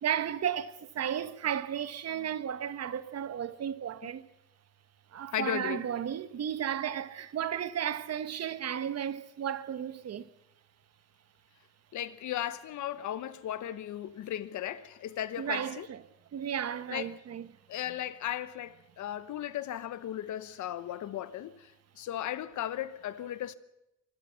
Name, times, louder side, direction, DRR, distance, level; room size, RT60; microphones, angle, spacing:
voice 1, 0.0-4.3 5.1-10.3 15.4-16.0 16.3-17.5, right 9 dB, 55° right, 1.2 m, -34 dB
voice 2, 5.3-5.8 11.9-15.9 16.9-17.1 17.7-23.5, left 11 dB, 75° left, 1.1 m, -36 dB
25.0 x 21.0 x 5.8 m
cardioid pair, 90°, 30 cm